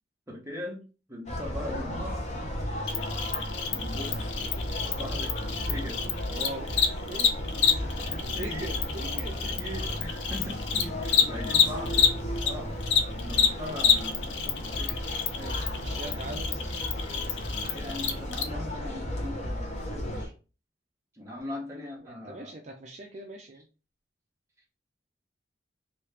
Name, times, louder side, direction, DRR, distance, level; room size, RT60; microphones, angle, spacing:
voice 1, 0.3-2.2 3.7-4.4 4.9-5.4 5.7-6.0 7.7-8.8 9.4-12.8 13.2-15.0 15.4-15.6 17.5-20.3 21.1-22.6, left 1 dB, 15° right, -2 dB, 1.1 m, -40 dB
sound 1, 1.3-20.3, equal, 40° left, 1.0 m, -34 dB
Cricket, 2.9-12.5 12.8-18.4, left 7 dB, 70° left, 0.5 m, -27 dB
voice 2, 6.3-7.8 8.3-9.4 15.3-16.6 22.0-23.7, right 1 dB, 40° right, 2 dB, 0.4 m, -41 dB
3.1 x 2.7 x 3.3 m, 0.34 s
head